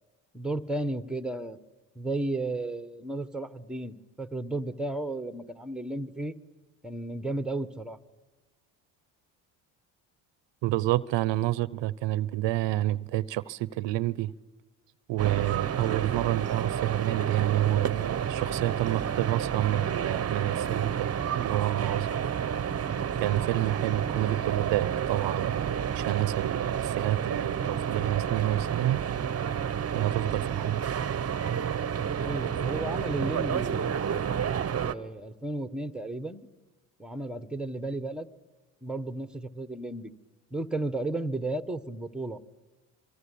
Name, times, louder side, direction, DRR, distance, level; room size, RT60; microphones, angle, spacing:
voice 1, 0.3-1.6 1.9-6.3 6.8-8.0 32.2-34.3 34.8-36.5 37.0-38.3 38.8-40.1 40.5-42.4, right 2 dB, ahead, 1.2 m, -33 dB
voice 2, 10.6-14.3 15.1-22.1 23.2-29.0 29.9-30.8, right 15 dB, 70° right, 0.8 m, -29 dB
sound 1, 15.2-34.9, right 8 dB, 35° right, 1.0 m, -30 dB
25.0 x 24.0 x 8.5 m
supercardioid pair, 80°, 45 cm